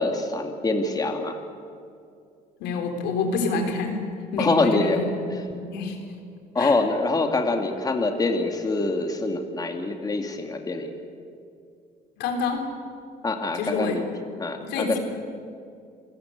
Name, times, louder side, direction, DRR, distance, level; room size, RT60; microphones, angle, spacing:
voice 1, 0.0-1.4 4.4-5.0 5.3-5.4 6.5-10.9 13.2-14.0 14.4-15.0, left 3 dB, 20° left, 4 dB, 2.3 m, -25 dB
voice 2, 2.6-4.0 4.3-5.1 5.5-6.0 6.6-6.7 12.2-12.7 13.6-14.0 14.6-15.0, left 4 dB, 90° left, 4 dB, 3.9 m, -27 dB
27.0 x 17.5 x 8.1 m, 2.4 s
cardioid pair, 110°, 17 cm